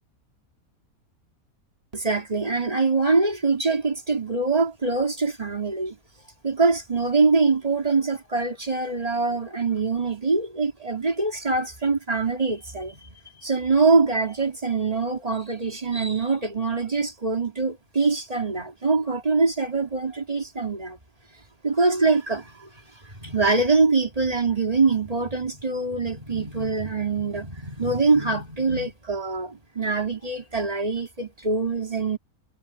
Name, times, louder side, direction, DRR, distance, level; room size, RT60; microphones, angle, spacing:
voice 1, 1.9-6.0 6.4-21.0 21.6-22.7 23.1-32.2, right 4 dB, 25° right, 2.6 m, -24 dB
omnidirectional pair, 1.5 m